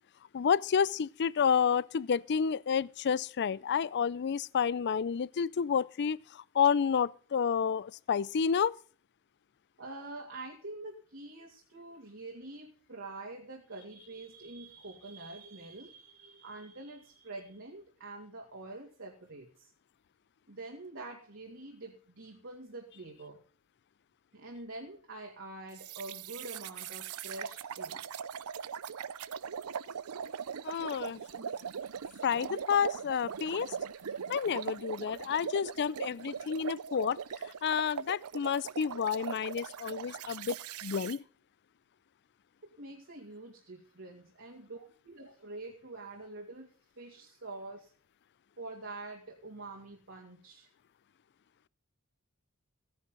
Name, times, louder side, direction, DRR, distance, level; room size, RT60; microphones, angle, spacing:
voice 1, 0.3-8.8 30.6-31.2 32.2-33.8 34.3-41.2, left 7 dB, 50° left, 0.4 m, -30 dB
voice 2, 9.8-19.7 20.5-23.4 24.3-28.0 31.3-31.4 42.8-46.7 47.0-47.9 48.6-50.7, right 2 dB, 60° right, 2.4 m, -46 dB
sound 1, 25.8-41.2, right 7 dB, 90° right, 0.6 m, -40 dB
15.5 x 10.0 x 3.8 m
head